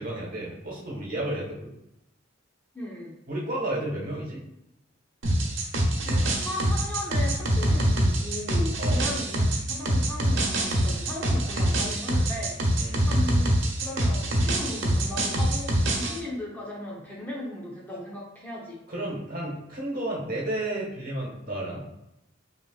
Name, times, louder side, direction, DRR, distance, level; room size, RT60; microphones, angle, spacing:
voice 1, 0.0-1.7 3.3-4.4 8.8-9.0 12.8-13.1 18.9-21.8, right 1 dB, 45° right, -3 dB, 1.4 m, -32 dB
voice 2, 2.7-3.1 5.9-13.5 13.8-18.8, left 1 dB, 10° left, -5 dB, 0.9 m, -36 dB
sound 1, 5.2-16.2, right 1 dB, 70° right, 0.9 m, -25 dB
5.7 x 3.1 x 2.4 m, 0.85 s
head